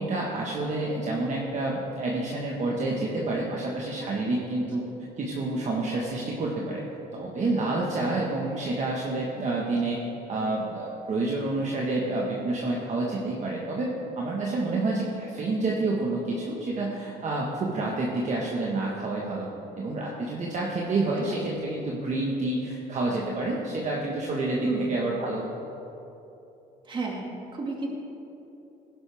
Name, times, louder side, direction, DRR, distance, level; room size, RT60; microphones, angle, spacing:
voice 1, 0.0-4.8 5.2-6.8 7.1-10.0 10.3-19.5 19.8-25.4, right 2 dB, 45° right, -3 dB, 1.5 m, -28 dB
voice 2, 26.9-27.9, right 3 dB, 30° right, -1 dB, 2.3 m, -32 dB
15.5 x 11.0 x 3.6 m, 3.0 s
cardioid pair, 110°, 17 cm